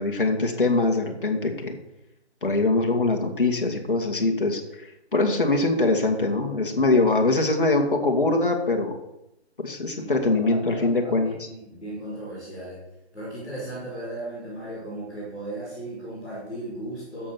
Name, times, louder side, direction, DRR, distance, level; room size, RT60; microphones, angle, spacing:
voice 1, 0.0-1.7 2.4-4.9 5.1-9.0 9.6-11.3, left 2 dB, 50° left, 2 dB, 2.2 m, -23 dB
voice 2, 10.0-12.8 13.1-17.3, right 1 dB, ahead, -20 dB, 2.1 m, -36 dB
9.9 x 7.7 x 6.1 m, 0.87 s
figure-of-eight pair, 175°, 34 cm